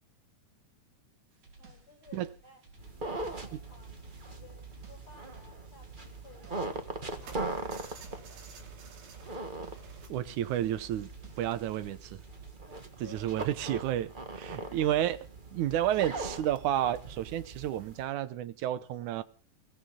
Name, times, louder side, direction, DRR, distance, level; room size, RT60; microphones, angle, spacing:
sound 1, 1.3-12.6, right 2 dB, 55° right, 4.8 m, -56 dB
voice 1, 1.6-2.6 3.0-4.0 4.3-8.5 13.0-13.5 14.5-14.8, left 4 dB, 35° left, 8.3 m, -56 dB
sound 2, 2.8-18.0, right 2 dB, 30° right, 0.9 m, -41 dB
sound 3, 4.1-4.3 4.6-6.9 7.2-10.1 10.6-10.7 11.0-11.1, right 5 dB, 85° right, 4.5 m, -53 dB
voice 2, 10.1-11.1 11.4-12.2 13.0-15.2 15.5-19.2, right 11 dB, 70° right, 2.2 m, -31 dB
22.5 x 17.0 x 3.8 m
omnidirectional pair, 3.9 m